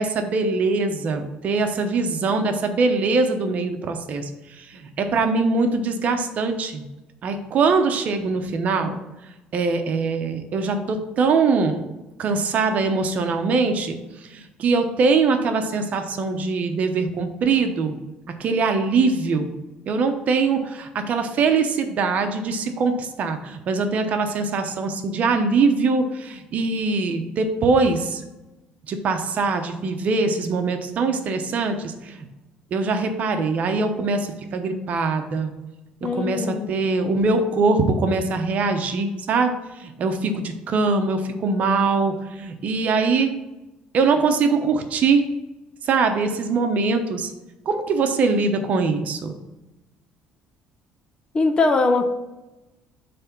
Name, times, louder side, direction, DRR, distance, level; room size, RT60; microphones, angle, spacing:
voice 1, 0.0-4.3 4.6-6.8 7.2-9.0 9.5-11.8 12.2-14.0 14.3-18.0 18.4-19.5 19.9-28.2 28.9-32.3 32.7-35.5 36.0-39.5 39.8-43.3 43.9-45.3 45.8-47.3 47.6-49.4, right 4 dB, 50° right, 6 dB, 0.9 m, -22 dB
voice 2, 36.0-36.8 51.3-52.1, left 3 dB, 30° left, 7 dB, 0.8 m, -21 dB
7.7 x 3.4 x 6.0 m, 1.0 s
cardioid pair, 105°, 3 cm